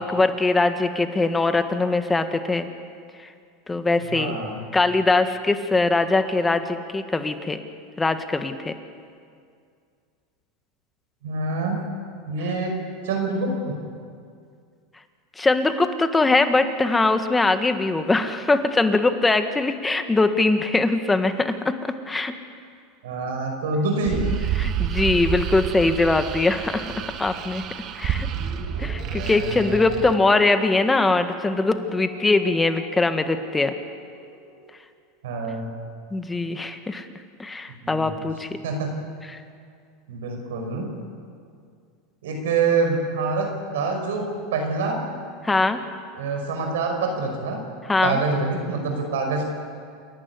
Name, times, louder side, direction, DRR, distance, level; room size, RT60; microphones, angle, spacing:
voice 1, 0.0-2.7 3.7-4.4 4.7-7.6 8.0-8.7 15.4-21.7 22.1-22.3 24.6-26.9 27.2-27.6 28.0-28.3 28.8-33.7 36.1-37.1 37.4-38.5 39.3-39.4 45.4-45.8 47.9-48.2, left 3 dB, 15° left, 8 dB, 1.7 m, -21 dB
voice 2, 4.1-4.6 11.2-11.8 12.3-12.7 13.0-13.7 23.0-24.2 29.0-29.7 35.2-35.7 37.8-38.3 38.6-38.9 40.1-40.9 42.2-44.3 44.5-45.0 46.1-47.6 48.0-49.5, right 3 dB, 80° right, 3 dB, 5.3 m, -26 dB
sound 1, 24.0-30.1, right 10 dB, 45° right, 1.4 m, -29 dB
sound 2, 28.1-34.7, left 3 dB, 80° left, 7.6 m, -43 dB
28.0 x 11.5 x 9.7 m, 2.3 s
hypercardioid pair, 105°, 0 cm